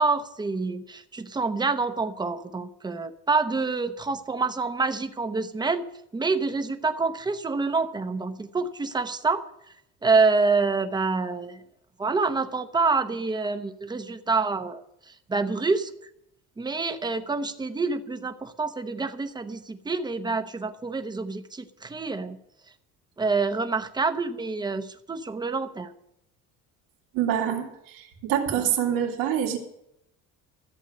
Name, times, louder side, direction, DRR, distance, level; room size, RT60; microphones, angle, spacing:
voice 1, 0.0-5.8 6.1-9.4 10.0-11.6 12.0-15.9 16.6-22.4 23.2-25.9, right 4 dB, 15° right, 9 dB, 0.9 m, -27 dB
voice 2, 27.1-29.6, right 9 dB, 90° right, 1 dB, 2.5 m, -26 dB
14.5 x 8.1 x 7.9 m, 0.79 s
cardioid pair, 145°, 33 cm